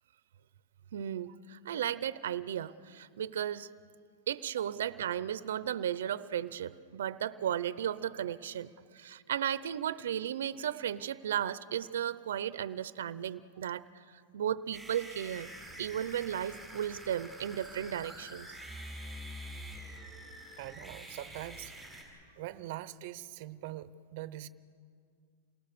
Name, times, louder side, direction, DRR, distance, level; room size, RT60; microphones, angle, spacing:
voice 1, 0.9-3.7 4.3-15.5 15.8-18.5, right 10 dB, 85° right, 15 dB, 0.7 m, -35 dB
sound 1, 14.7-22.0, equal, ahead, 6.0 m, -46 dB
voice 2, 20.6-21.7 22.4-24.5, right 14 dB, 45° right, 13 dB, 0.8 m, -43 dB
28.5 x 20.0 x 6.8 m, 2.2 s
supercardioid pair, 165°, 0 cm